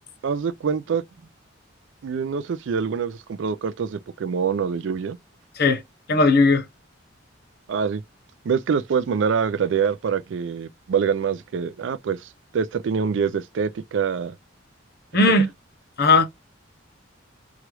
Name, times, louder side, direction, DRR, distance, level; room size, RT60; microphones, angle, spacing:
voice 1, 0.2-1.0 2.0-5.2 7.7-8.0 8.5-14.4, right 6 dB, 60° right, 0.3 m, -25 dB
voice 2, 6.1-6.6 15.1-15.5 16.0-16.2, left 3 dB, 55° left, 0.7 m, -17 dB
3.0 x 2.3 x 3.0 m
head